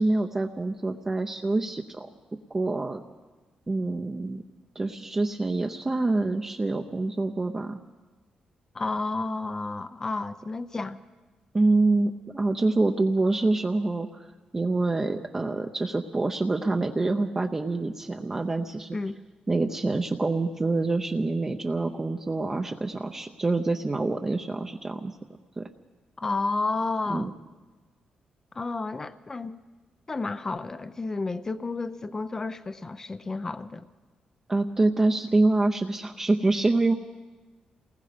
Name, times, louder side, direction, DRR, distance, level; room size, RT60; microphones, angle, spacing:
voice 1, 0.0-2.1 2.5-3.0 3.7-4.4 4.8-7.8 11.5-14.2 14.5-19.0 19.5-25.1 25.6-25.7 27.1-27.3 34.5-36.9, right 2 dB, 20° right, 0.7 m, -26 dB
voice 2, 8.7-11.0 18.9-19.2 26.2-27.3 28.5-29.6 30.1-33.9, left 3 dB, 20° left, 0.6 m, -31 dB
28.0 x 19.5 x 5.1 m
wide cardioid pair, 150°, 2 cm